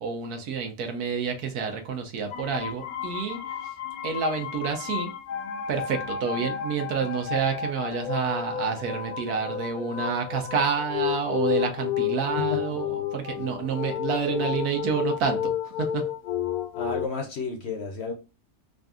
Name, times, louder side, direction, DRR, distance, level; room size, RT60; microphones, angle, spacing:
voice 1, 0.0-3.7 4.0-5.1 5.7-16.1, right 5 dB, 80° right, 1.4 m, -29 dB
sound 1, 2.3-17.1, left 10 dB, 75° left, 1.1 m, -31 dB
voice 2, 16.8-18.1, left 4 dB, 55° left, 0.8 m, -31 dB
3.8 x 2.6 x 3.5 m
omnidirectional pair, 1.6 m